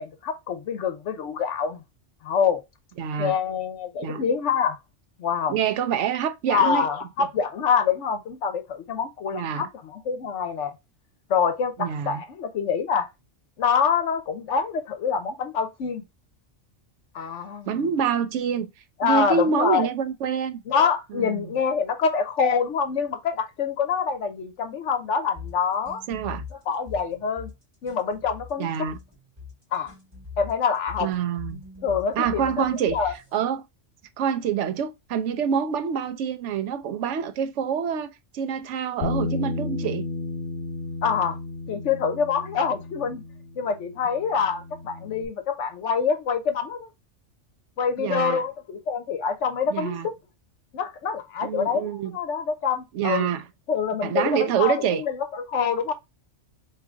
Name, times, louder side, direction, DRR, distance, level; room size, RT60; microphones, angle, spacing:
voice 1, 0.0-1.8 2.2-2.6 3.2-4.8 5.2-5.6 6.5-10.7 11.3-13.1 13.6-16.0 17.1-17.7 19.0-19.9 20.7-26.0 26.7-27.5 27.8-28.9 29.7-29.9 30.4-31.1 31.8-32.6 32.9-33.1 41.0-41.4 41.7-43.2 43.6-46.9 47.8-50.1 50.7-53.3 53.7-55.9, left 6 dB, 75° left, 1.0 m, -26 dB
voice 2, 3.0-3.3 4.0-4.2 5.5-6.9 9.3-9.7 11.8-12.2 17.7-18.7 19.0-20.6 21.1-21.5 26.1-26.4 28.6-29.0 31.0-31.6 32.2-33.6 34.2-40.1 48.0-48.4 49.7-50.1 51.4-52.2 52.9-53.4 54.0-55.0, right 7 dB, 75° right, 0.9 m, -26 dB
sound 1, 25.4-33.4, left 5 dB, 15° right, 2.1 m, -42 dB
Bass guitar, 39.0-45.3, left 3 dB, 50° left, 0.9 m, -33 dB
3.7 x 3.0 x 3.5 m
omnidirectional pair, 1.3 m